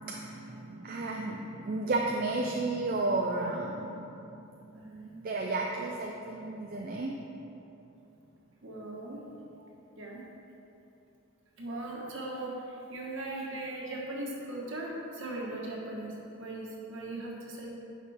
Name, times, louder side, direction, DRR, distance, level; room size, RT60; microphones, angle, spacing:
voice 1, 0.0-4.1 5.2-7.2, right 2 dB, 40° right, 0 dB, 0.5 m, -32 dB
voice 2, 4.7-5.2 8.6-9.2 10.0-10.2 11.6-17.7, right 2 dB, 60° right, -3 dB, 1.4 m, -39 dB
10.5 x 5.8 x 3.5 m, 2.9 s
head